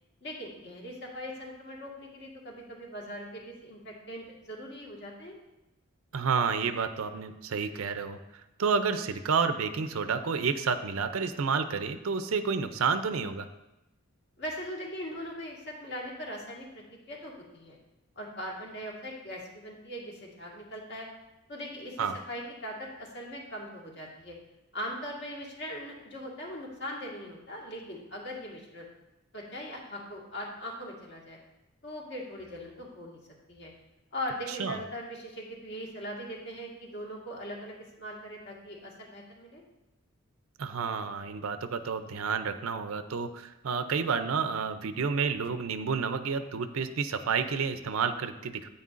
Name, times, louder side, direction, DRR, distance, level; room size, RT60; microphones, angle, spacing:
voice 1, 0.2-5.3 14.4-17.8 18.2-21.1 21.5-24.4 24.7-28.9 29.3-31.4 31.8-33.2 33.5-33.7 34.1-39.6, equal, 55° left, -2 dB, 1.7 m, -40 dB
voice 2, 6.1-8.2 8.6-13.5 22.0-22.2 34.5-34.8 40.6-48.7, right 5 dB, 75° right, 10 dB, 0.5 m, -30 dB
9.3 x 8.9 x 2.5 m, 0.95 s
head